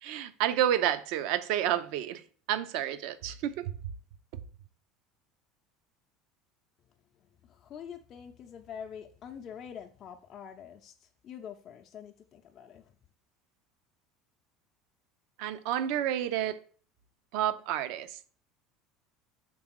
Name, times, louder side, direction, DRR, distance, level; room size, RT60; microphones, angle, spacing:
voice 1, 0.0-2.2 2.5-3.7 15.4-16.6 17.3-18.2, right 11 dB, 60° right, 0.5 m, -30 dB
voice 2, 7.4-13.0, left 8 dB, 45° left, 0.5 m, -45 dB
6.0 x 3.5 x 4.5 m
figure-of-eight pair, 70°, 0 cm